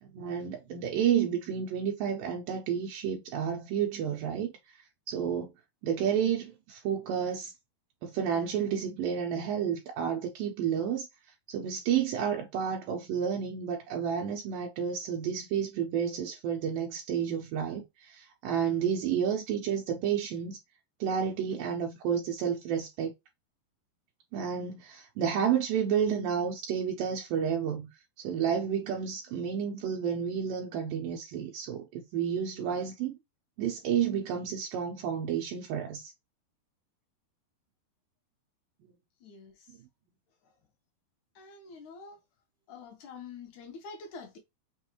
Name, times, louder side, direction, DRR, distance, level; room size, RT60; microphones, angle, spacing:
voice 1, 0.0-4.5 5.1-5.5 5.8-7.5 8.0-11.1 11.5-20.6 21.0-23.1 24.3-27.9 28.2-33.2 33.6-36.1, right 8 dB, 85° right, 1.9 m, -31 dB
voice 2, 39.2-39.7 41.4-42.2 42.7-44.4, left 4 dB, 75° left, 1.8 m, -46 dB
6.2 x 2.4 x 2.9 m
omnidirectional pair, 4.9 m